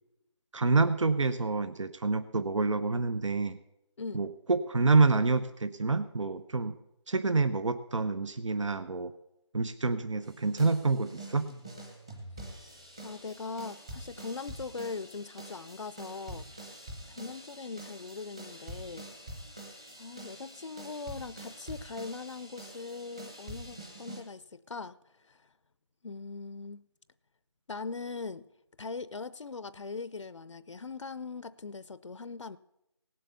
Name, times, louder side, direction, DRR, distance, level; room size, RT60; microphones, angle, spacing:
voice 1, 0.5-3.6 4.1-6.7 7.1-9.1 9.5-11.5, right 3 dB, 80° right, 0.9 m, -27 dB
sound 1, 10.2-24.2, right 1 dB, 10° right, 0.9 m, -46 dB
voice 2, 13.0-16.5 17.0-19.1 20.0-25.0 25.2-25.5 26.0-26.8 27.7-28.5 28.8-32.6, left 4 dB, 75° left, 0.6 m, -40 dB
18.0 x 7.8 x 6.8 m
figure-of-eight pair, 180°, 16 cm